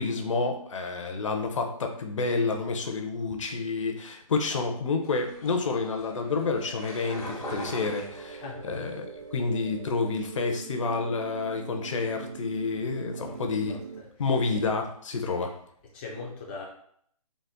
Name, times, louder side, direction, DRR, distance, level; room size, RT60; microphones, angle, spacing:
voice 1, 0.0-13.8 14.2-15.5, left 4 dB, 55° left, 4 dB, 0.7 m, -29 dB
sound 1, 5.0-8.7 9.2-9.8, left 1 dB, 75° left, 1.3 m, -42 dB
sound 2, 6.0-14.0, right 6 dB, 65° right, 0.5 m, -43 dB
voice 2, 8.4-8.7 13.2-14.6 15.2-15.5 15.9-16.6, left 4 dB, 15° left, -4 dB, 0.4 m, -42 dB
4.0 x 2.0 x 3.6 m, 0.65 s
figure-of-eight pair, 150°, 19 cm